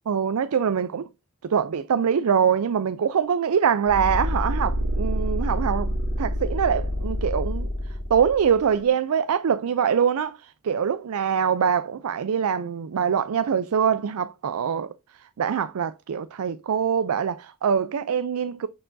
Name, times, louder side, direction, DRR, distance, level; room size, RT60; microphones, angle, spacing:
voice 1, 0.1-1.1 1.4-7.7 8.1-14.9 15.4-18.7, right 7 dB, 80° right, 0.4 m, -24 dB
sound 1, 3.9-8.8, equal, 60° right, 2.2 m, -27 dB
6.7 x 6.2 x 2.6 m
head